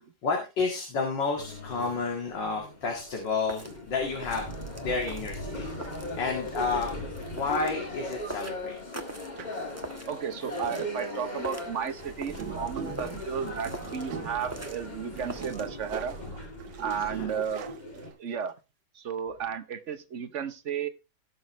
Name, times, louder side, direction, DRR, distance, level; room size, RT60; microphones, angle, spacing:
voice 1, 0.2-4.5 4.8-5.7 6.1-6.9 7.3-8.8 12.9-13.2 17.0-17.4, left 4 dB, 80° left, 1 dB, 2.8 m, -31 dB
sound 1, 1.4-18.1, left 1 dB, 25° left, 2.2 m, -39 dB
sound 2, 2.9-15.7, right 1 dB, 10° right, 1.1 m, -45 dB
sound 3, 9.4-9.8 11.1-11.4 12.0-18.4, right 7 dB, 80° right, 1.7 m, -42 dB
voice 2, 9.7-16.2 16.8-17.7 18.2-18.6 18.9-20.9, right 7 dB, 50° right, 11 dB, 1.1 m, -33 dB
17.0 x 6.6 x 3.1 m, 0.27 s
omnidirectional pair, 2.0 m